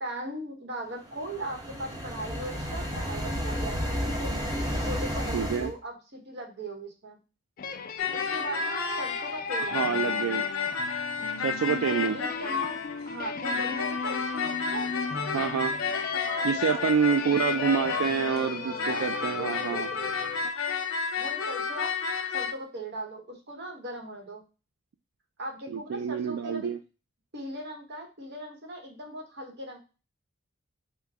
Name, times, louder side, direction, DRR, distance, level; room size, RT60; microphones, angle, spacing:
voice 1, 0.0-4.4 4.8-7.2 8.1-10.0 11.8-12.8 13.1-15.4 16.1-17.7 18.2-20.3 21.2-21.9 22.3-24.4 25.4-26.7 27.3-29.8, right 1 dB, 50° right, 2 dB, 1.0 m, -39 dB
sound 1, 1.0-5.7, equal, 15° right, 0.8 m, -32 dB
voice 2, 5.3-5.7 9.7-10.4 11.4-12.2 15.3-15.7 16.4-19.9 25.7-26.8, right 7 dB, 75° right, 7 dB, 0.3 m, -27 dB
sound 2, 7.6-20.5, left 5 dB, 40° left, 0.3 m, -37 dB
sound 3, 8.0-13.1 13.4-18.5 18.8-22.5, left 5 dB, 70° left, 0.8 m, -31 dB
4.9 x 2.2 x 3.4 m, 0.32 s
head